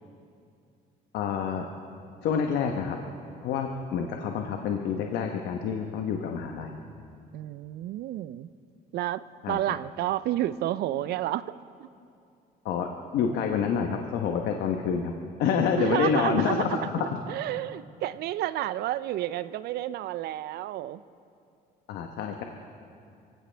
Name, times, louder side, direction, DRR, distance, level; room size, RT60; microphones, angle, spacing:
voice 1, 1.1-1.7 2.2-3.0 3.4-6.8 9.4-9.6 12.6-15.1 15.4-17.2 21.9-22.4, left 7 dB, 75° left, 3 dB, 1.1 m, -28 dB
voice 2, 7.3-8.5 8.9-11.5 11.8-11.9 15.8-21.0, right 13 dB, 70° right, 16 dB, 0.5 m, -30 dB
24.0 x 16.0 x 3.4 m, 2.4 s
cardioid pair, 110°, 17 cm